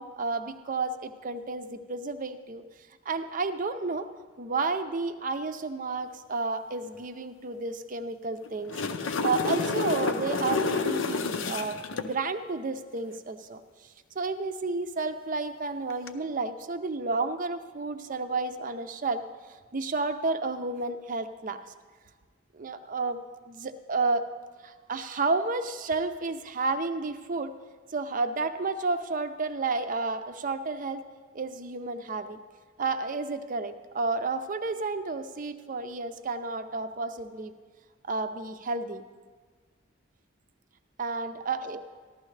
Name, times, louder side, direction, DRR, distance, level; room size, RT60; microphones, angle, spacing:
voice 1, 0.0-2.6 3.1-4.1 4.4-8.7 9.2-19.2 19.7-21.6 22.5-23.2 23.5-24.2 24.6-27.5 27.9-31.0 31.3-32.4 32.8-37.5 38.0-39.0 41.0-41.8, right 3 dB, 40° right, 9 dB, 0.5 m, -31 dB
sound 1, 8.5-12.1 15.9-16.1, left 4 dB, 70° left, 0.6 m, -29 dB
14.5 x 12.0 x 3.3 m, 1.5 s
head